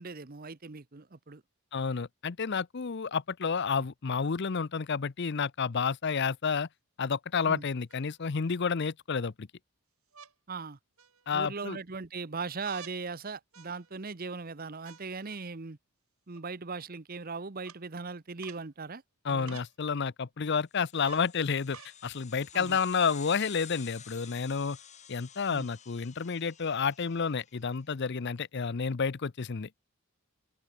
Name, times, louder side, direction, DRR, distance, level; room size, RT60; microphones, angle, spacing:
voice 1, 0.0-1.4 7.4-7.6 10.5-10.8 11.3-15.8 16.3-19.0 19.3-19.6 22.5-22.8 25.5-25.7, right 4 dB, 40° right, 0.9 m, -39 dB
voice 2, 1.7-6.7 7.0-9.5 11.3-11.8 19.2-24.8 25.1-29.7, left 5 dB, 50° left, 0.6 m, -30 dB
sound 1, 6.2-6.3 7.9-8.6 10.1-10.3 11.0-11.5 12.6-13.0 13.5-14.1 14.8-15.4 16.3-16.4 17.6-17.8 18.4-18.7 19.5-19.7 21.0-21.3 21.7-22.0 22.8-22.9, right 7 dB, 75° right, 6.0 m, -51 dB
sound 2, 20.8-27.6, left 9 dB, 30° left, 4.5 m, -51 dB
open air
head